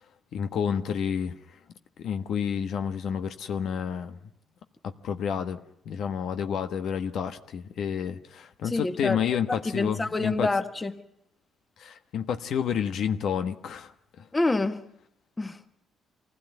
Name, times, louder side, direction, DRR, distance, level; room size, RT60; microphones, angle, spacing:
voice 1, 0.3-1.4 2.0-4.2 4.8-5.6 5.8-10.5 11.8-13.9 14.2-14.3, left 8 dB, 70° left, 1.4 m, -30 dB
voice 2, 8.6-9.2 9.5-11.0 14.3-14.8 15.4-15.6, left 2 dB, 20° left, 1.7 m, -27 dB
25.5 x 16.0 x 9.4 m
cardioid pair, 90°, 0 cm